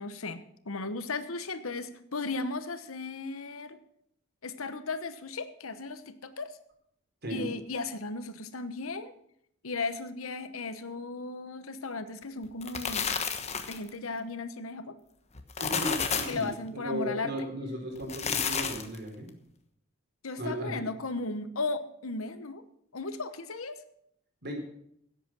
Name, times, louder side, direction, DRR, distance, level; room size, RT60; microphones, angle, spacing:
voice 1, 0.0-3.8 4.4-6.6 7.3-9.1 9.6-13.1 13.7-15.0 16.3-17.5 20.2-22.6 22.9-23.8, left 3 dB, 85° left, 12 dB, 1.1 m, -36 dB
voice 2, 7.2-7.5 15.6-16.5 16.7-19.3 20.4-20.8 24.4-24.5, equal, 50° right, 2 dB, 4.1 m, -35 dB
sound 1, 12.4-13.9 15.3-16.4 18.0-19.0, left 6 dB, 30° left, 1.2 m, -31 dB
16.5 x 8.1 x 6.1 m, 0.72 s
head